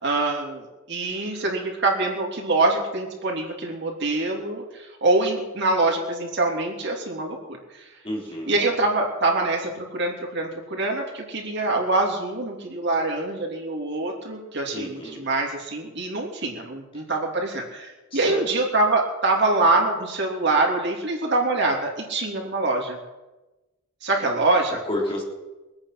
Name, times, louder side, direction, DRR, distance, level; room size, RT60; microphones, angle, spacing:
voice 1, 0.0-7.9 8.5-23.0 24.0-24.8, right 2 dB, 60° right, 0 dB, 3.2 m, -24 dB
voice 2, 8.0-8.7 14.7-15.2 18.1-18.5 24.8-25.2, left 1 dB, 30° left, -2 dB, 3.5 m, -30 dB
23.0 x 8.8 x 6.0 m, 1.1 s
head